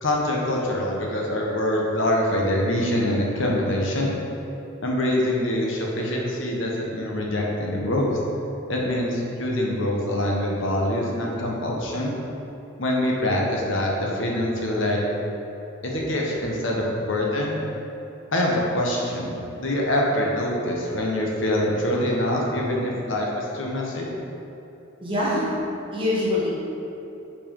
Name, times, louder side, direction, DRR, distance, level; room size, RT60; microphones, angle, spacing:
voice 1, 0.0-4.1 4.8-8.2 8.7-12.1 12.8-15.0 15.8-17.6 18.3-24.1, left 1 dB, 65° left, -2 dB, 1.1 m, -24 dB
voice 2, 25.0-25.5 25.9-26.5, left 1 dB, 25° right, -7 dB, 1.5 m, -24 dB
5.9 x 4.6 x 5.3 m, 3.0 s
head